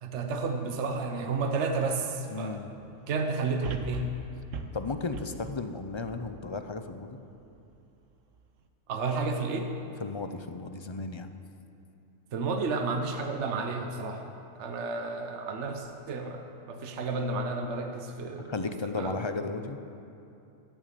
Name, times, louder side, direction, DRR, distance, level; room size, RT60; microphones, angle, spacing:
voice 1, 0.0-2.6 3.1-4.1 8.9-9.7 12.3-14.3 14.6-18.5 18.9-19.2, right 3 dB, 65° right, 4 dB, 1.2 m, -31 dB
voice 2, 2.3-2.7 4.7-7.2 10.0-11.3 18.4-19.8, left 3 dB, 35° left, 8 dB, 0.5 m, -34 dB
sound 1, 3.6-6.9 7.4-7.5, right 4 dB, 90° right, 1.2 m, -40 dB
14.0 x 7.3 x 9.1 m, 2.8 s
omnidirectional pair, 1.3 m